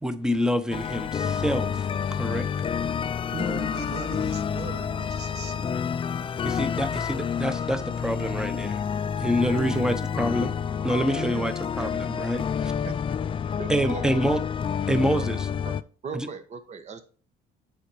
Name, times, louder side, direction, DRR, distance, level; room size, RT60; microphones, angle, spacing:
voice 1, 0.0-2.5 6.4-8.8 9.2-10.6 10.8-12.7 13.7-14.4 14.9-15.5 16.1-16.3, equal, 5° right, 0.9 m, -27 dB
sound 1, 0.7-15.8, left 7 dB, 30° left, 0.4 m, -29 dB
voice 2, 3.3-5.8 9.6-10.0 11.1-11.5 12.8-12.9, right 7 dB, 75° right, 1.2 m, -38 dB
voice 3, 13.6-14.1 15.1-15.2 15.6-15.7 16.0-17.0, right 5 dB, 45° right, 1.3 m, -37 dB
8.4 x 5.2 x 4.6 m
cardioid pair, 110°, 17 cm